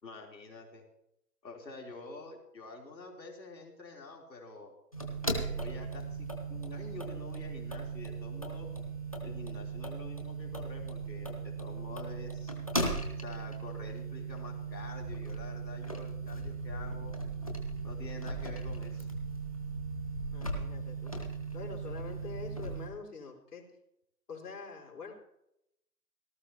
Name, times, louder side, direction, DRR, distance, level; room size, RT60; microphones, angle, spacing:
voice 1, 0.0-0.9 1.4-4.7 5.2-8.7 9.2-12.5 13.2-17.2 17.8-19.1, left 3 dB, 90° left, 0 dB, 3.7 m, -48 dB
sound 1, 4.9-22.9, right 3 dB, 20° left, 1.0 m, -37 dB
voice 2, 20.3-21.1 21.5-23.6 24.3-25.2, left 5 dB, 65° left, -1 dB, 4.2 m, -45 dB
18.0 x 13.0 x 2.9 m, 0.80 s
hypercardioid pair, 180°, 50 cm